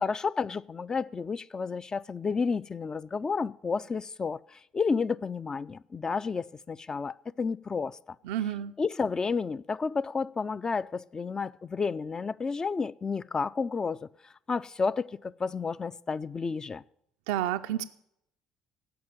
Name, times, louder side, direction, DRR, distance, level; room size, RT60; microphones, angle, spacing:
voice 1, 0.0-8.2 8.8-16.8, left 5 dB, 30° left, 0.4 m, -31 dB
voice 2, 8.3-8.7 17.3-17.8, right 12 dB, 80° right, 0.4 m, -30 dB
15.5 x 5.7 x 8.8 m
hypercardioid pair, 55°, 2 cm